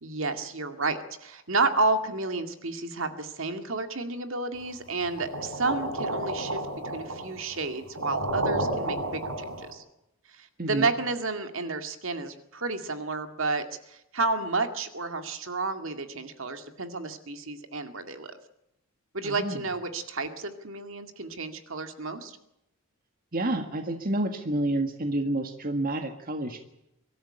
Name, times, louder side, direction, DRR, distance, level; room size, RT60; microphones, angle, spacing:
voice 1, 0.0-6.6 6.9-9.8 10.4-18.3 19.1-22.4, right 3 dB, 65° right, 7 dB, 2.1 m, -31 dB
sound 1, 5.2-9.7, right 1 dB, 85° right, 4.9 m, -31 dB
voice 2, 19.2-19.6 23.3-26.6, right 1 dB, 40° right, 6 dB, 1.7 m, -29 dB
23.5 x 13.5 x 10.0 m, 0.85 s
head